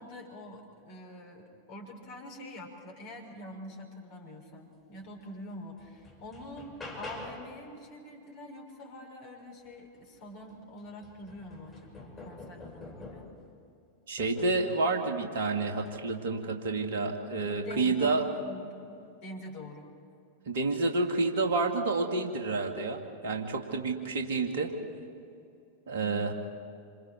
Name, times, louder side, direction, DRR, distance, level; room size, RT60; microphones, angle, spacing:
voice 1, 0.0-13.3 17.4-19.9, left 1 dB, 45° left, 1 dB, 5.8 m, -45 dB
sound 1, 5.2-5.3 5.8-7.6 10.0-10.1 10.5-13.5 14.2-14.7 15.7-16.0, left 2 dB, 10° left, 5.7 m, -46 dB
voice 2, 14.1-18.2 20.5-24.7 25.9-26.3, right 3 dB, 60° right, 3 dB, 2.4 m, -29 dB
28.0 x 27.0 x 4.6 m, 2.5 s
figure-of-eight pair, 90°, 0 cm